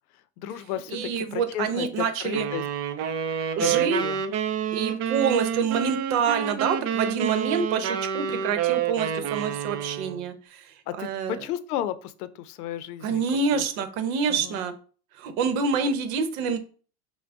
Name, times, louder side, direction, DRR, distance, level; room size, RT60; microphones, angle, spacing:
voice 1, 0.4-2.6 3.6-4.2 10.9-13.2 13.5-13.6 14.3-14.6, left 11 dB, 85° left, 14 dB, 0.6 m, -33 dB
voice 2, 0.9-2.5 3.6-4.0 4.7-11.3 13.0-14.7 15.2-16.6, right 6 dB, 65° right, 9 dB, 0.9 m, -27 dB
sound 1, 2.3-10.3, right 9 dB, 40° right, 0.5 m, -28 dB
5.8 x 2.2 x 3.6 m, 0.40 s
supercardioid pair, 130°, 44 cm